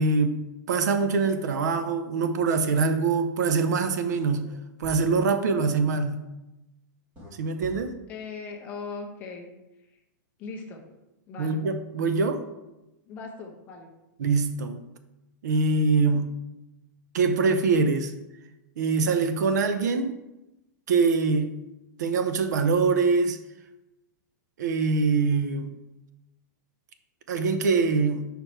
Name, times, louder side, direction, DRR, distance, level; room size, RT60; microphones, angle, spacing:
voice 1, 0.0-4.5 4.8-6.2 7.4-8.0 11.4-12.4 14.2-14.8 15.4-16.3 17.1-18.1 18.8-20.1 20.9-21.6 22.0-23.4 24.6-25.7 27.3-28.3, right 4 dB, 60° right, 9 dB, 0.6 m, -24 dB
sound 1, 4.4-4.5 4.8-5.0 7.1-7.3 7.6-7.8, left 1 dB, 15° right, 1.5 m, -43 dB
voice 2, 8.1-9.5 9.8-10.0 10.4-10.9 11.3-11.6 13.1-13.9, left 4 dB, 15° left, 1 dB, 0.7 m, -39 dB
5.2 x 4.5 x 4.4 m, 0.98 s
supercardioid pair, 175°, 10 cm